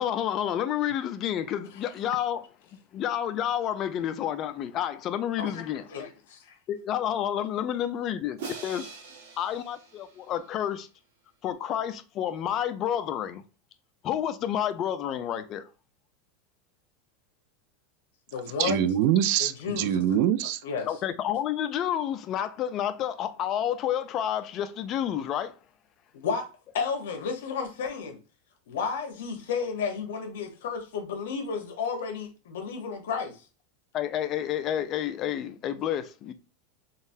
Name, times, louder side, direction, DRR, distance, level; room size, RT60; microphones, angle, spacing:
voice 1, 0.0-2.5 2.9-5.8 6.7-8.9 9.4-10.9 11.4-13.4 14.0-15.7 20.9-25.5 33.9-36.3, left 10 dB, 35° left, 0.4 m, -30 dB
voice 2, 5.4-6.6 18.3-18.9 19.4-20.0 20.6-20.9 26.1-26.5 26.7-28.2 28.7-33.4, left 5 dB, 85° left, 1.0 m, -32 dB
Crash cymbal, 8.4-10.6, right 5 dB, 80° right, 1.0 m, -43 dB
voice 3, 18.6-20.6, right 10 dB, 60° right, 0.3 m, -24 dB
3.8 x 2.0 x 2.7 m
supercardioid pair, 140°, 0 cm